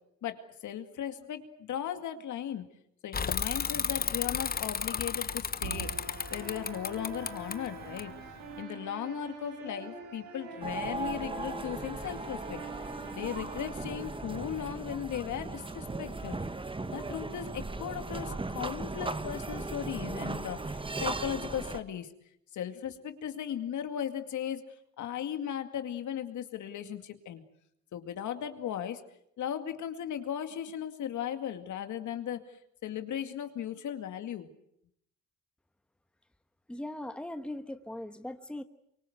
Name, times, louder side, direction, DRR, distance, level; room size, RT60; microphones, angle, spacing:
voice 1, 0.2-2.6 3.0-5.9 6.3-8.1 8.6-16.4 16.9-22.1 22.5-24.6 25.0-27.4 27.9-29.0 29.4-34.5, left 9 dB, 75° left, 8 dB, 2.3 m, -37 dB
Bicycle / Mechanisms, 3.1-8.6, left 6 dB, 30° left, 1.0 m, -34 dB
sound 1, 5.6-14.6, right 4 dB, 85° right, 5.2 m, -44 dB
sound 2, 10.6-21.8, right 3 dB, 15° right, 1.3 m, -37 dB
voice 2, 36.7-38.6, left 1 dB, 5° left, 9 dB, 1.4 m, -39 dB
24.5 x 24.0 x 8.0 m, 0.74 s
cardioid pair, 90°, 30 cm